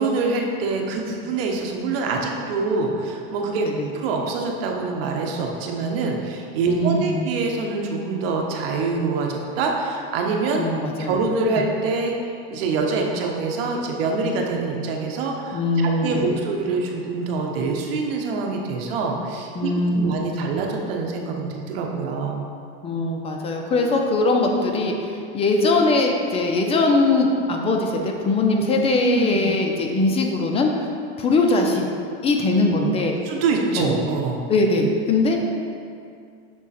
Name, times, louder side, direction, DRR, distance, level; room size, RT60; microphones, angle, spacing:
voice 1, 0.0-3.7 3.9-10.6 11.1-12.1 12.5-22.5 29.0-29.4 33.2-34.4, right 4 dB, 70° right, 1 dB, 1.0 m, -25 dB
voice 2, 6.6-7.2 10.6-11.3 15.5-16.4 19.5-20.1 22.8-30.9 31.2-31.9 32.2-33.2 33.8-34.0 34.5-35.5, left 2 dB, 20° left, 2 dB, 0.5 m, -21 dB
6.2 x 3.6 x 4.2 m, 2.4 s
supercardioid pair, 135°, 30 cm